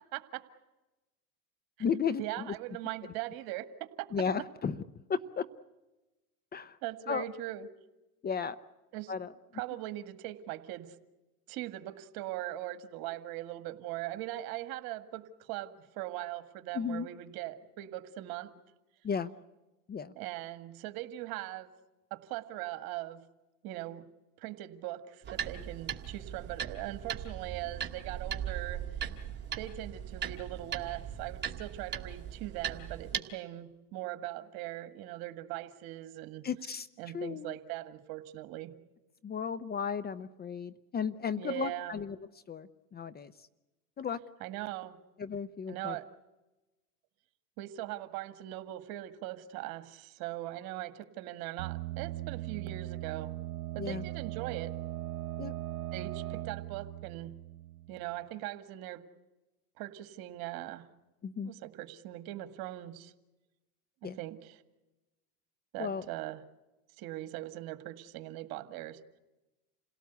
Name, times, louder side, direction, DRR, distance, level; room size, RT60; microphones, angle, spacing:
voice 1, 0.1-0.4 2.2-4.1 6.8-7.7 8.9-9.1 9.5-11.0 11.5-18.5 20.2-21.7 22.1-23.2 23.6-24.0 24.4-28.8 29.6-36.5 37.0-38.7 41.4-42.0 44.4-45.0 45.7-46.1 47.6-53.3 53.7-54.7 55.9-57.4 57.9-59.0 59.8-60.9 61.4-63.1 64.0-64.6 65.7-66.4 67.0-69.0, right 15 dB, 55° right, 10 dB, 1.9 m, -40 dB
voice 2, 1.8-2.5 4.1-4.8 5.1-5.4 6.5-6.8 7.1-7.3 8.2-8.6 9.1-9.3 16.7-17.1 19.0-19.3 19.9-20.1 36.4-36.9 37.1-37.6 39.2-42.2 42.5-43.3 44.0-44.2 45.2-46.0 53.8-54.0 55.4-55.5 61.2-61.5 64.0-64.2 65.8-66.1, left 6 dB, 20° left, 14 dB, 0.8 m, -34 dB
sound 1, 25.2-33.2, right 8 dB, 25° right, 2.4 m, -39 dB
sound 2, 51.6-58.2, right 15 dB, 80° right, 1.1 m, -39 dB
28.0 x 17.5 x 8.2 m, 1.1 s
hypercardioid pair, 100°, 43 cm